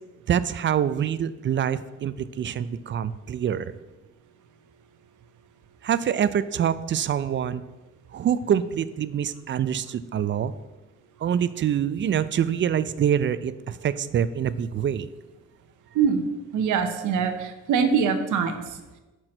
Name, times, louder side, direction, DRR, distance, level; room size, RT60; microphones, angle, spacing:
voice 1, 0.3-3.7 5.8-7.6 8.1-10.5 11.2-15.1, right 9 dB, 40° right, 15 dB, 0.4 m, -25 dB
voice 2, 16.5-18.5, right 6 dB, 80° right, 7 dB, 0.8 m, -23 dB
5.9 x 4.5 x 6.4 m, 1.1 s
cardioid pair, 90°, 30 cm